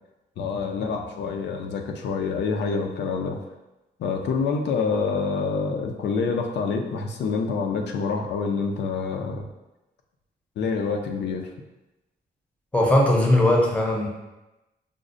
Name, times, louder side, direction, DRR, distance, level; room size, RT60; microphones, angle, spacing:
voice 1, 0.4-3.4 4.0-9.5 10.6-11.5, left 5 dB, 75° left, 3 dB, 0.4 m, -27 dB
voice 2, 12.7-14.1, left 1 dB, 5° left, -1 dB, 0.6 m, -19 dB
5.0 x 2.0 x 2.5 m, 1.0 s
wide cardioid pair, 125°, 18 cm